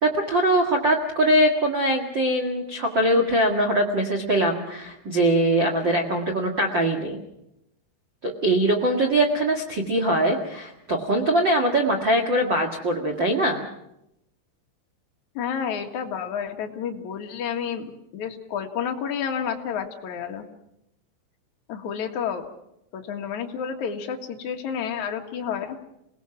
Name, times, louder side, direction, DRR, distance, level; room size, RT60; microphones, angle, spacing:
voice 1, 0.0-7.2 8.2-13.6, right 1 dB, 75° right, 1 dB, 1.0 m, -22 dB
voice 2, 15.3-20.4 21.7-22.5 22.9-25.8, left 7 dB, 55° left, 3 dB, 2.2 m, -30 dB
28.0 x 19.5 x 6.0 m, 0.82 s
omnidirectional pair, 5.7 m